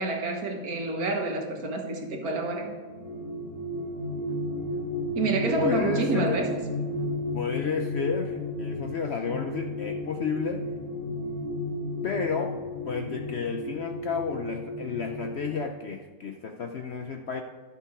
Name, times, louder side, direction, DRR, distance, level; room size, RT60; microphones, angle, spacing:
voice 1, 0.0-2.7 5.1-6.6, right 3 dB, 55° right, 2 dB, 1.7 m, -28 dB
sound 1, 2.8-15.6, left 2 dB, 20° left, 1.6 m, -33 dB
voice 2, 5.6-6.4 7.3-10.6 12.0-12.6 12.9-17.4, left 5 dB, 80° left, 4 dB, 0.5 m, -31 dB
11.0 x 6.0 x 4.8 m, 1.4 s
omnidirectional pair, 1.9 m